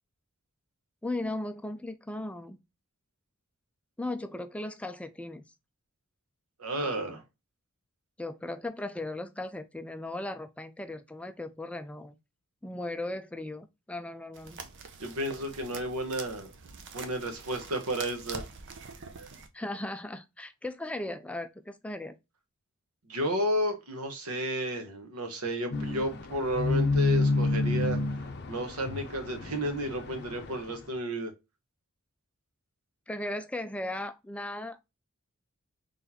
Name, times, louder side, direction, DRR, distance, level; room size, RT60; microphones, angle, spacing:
voice 1, 1.0-2.6 4.0-5.4 8.2-12.1 12.6-14.6 19.5-22.1 33.1-34.8, left 2 dB, 5° left, 0.3 m, -37 dB
voice 2, 6.6-7.2 15.0-16.5 16.9-18.4 23.1-28.0 28.5-31.3, equal, 85° right, 1.1 m, -32 dB
sound 1, 14.3-19.5, right 5 dB, 60° right, 0.7 m, -44 dB
sound 2, 25.7-30.6, left 2 dB, 50° left, 0.6 m, -28 dB
3.9 x 3.2 x 2.7 m
head